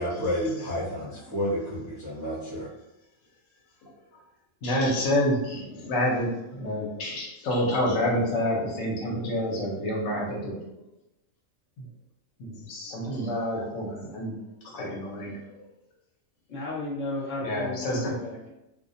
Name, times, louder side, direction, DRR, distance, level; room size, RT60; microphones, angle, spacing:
voice 1, 0.0-2.7, equal, 30° right, -10 dB, 0.3 m, -30 dB
voice 2, 4.6-10.6 11.8-11.9 12.4-14.3 14.7-15.4 17.4-18.1, left 1 dB, 70° left, -3 dB, 1.0 m, -28 dB
voice 3, 16.5-18.5, left 2 dB, 40° left, -6 dB, 0.9 m, -34 dB
2.4 x 2.1 x 2.5 m, 0.91 s
omnidirectional pair, 1.4 m